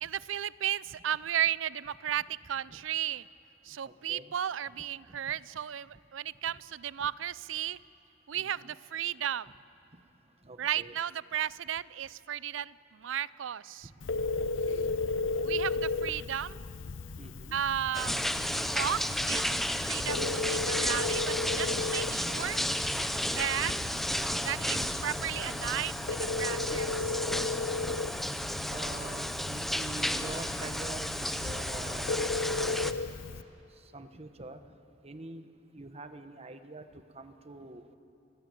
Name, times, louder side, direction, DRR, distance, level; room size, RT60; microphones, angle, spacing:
voice 1, 0.0-3.3 3.6-7.8 8.3-9.5 10.6-13.9 15.4-16.6 17.5-18.4 18.7-19.6 19.9-22.6 23.3-23.7 24.4-27.2, right 10 dB, 80° right, 20 dB, 0.4 m, -34 dB
voice 2, 3.8-4.3 5.1-5.2 7.0-7.1 8.4-8.8 10.4-10.9 13.8-13.9 14.4-14.9 15.3-15.4 17.2-17.6 23.8-23.9 24.2-24.3 24.6-24.7 27.7-28.3 28.7-32.2 32.5-33.0 33.9-34.6 35.0-35.5 35.7-38.0, right 2 dB, 35° right, 9 dB, 1.2 m, -45 dB
Telephone, 14.0-33.4, left 3 dB, 85° left, 0.7 m, -35 dB
sound 1, 17.9-32.9, equal, ahead, 0.8 m, -33 dB
29.5 x 16.0 x 9.1 m, 2.9 s
head